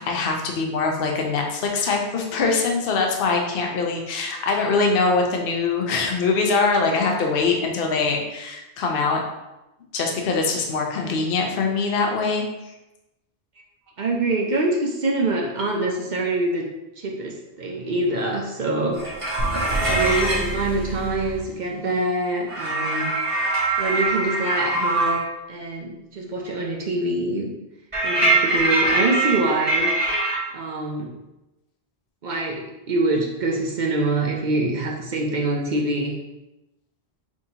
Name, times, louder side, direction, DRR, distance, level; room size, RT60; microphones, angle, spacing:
voice 1, 0.0-9.2 9.9-12.4, left 4 dB, 60° left, 1 dB, 0.8 m, -23 dB
voice 2, 14.0-16.7 17.0-19.0 19.9-23.1 23.8-25.2 25.5-27.5 28.0-29.9 30.5-31.1 32.2-36.2, right 2 dB, 55° right, -1 dB, 0.6 m, -25 dB
sound 1, 18.9-20.5 22.5-25.3 27.9-30.4, right 2 dB, 30° right, 1.1 m, -23 dB
sound 2, 19.4-22.2, right 3 dB, 70° right, 1.0 m, -29 dB
5.9 x 2.7 x 2.8 m, 0.98 s
omnidirectional pair, 1.1 m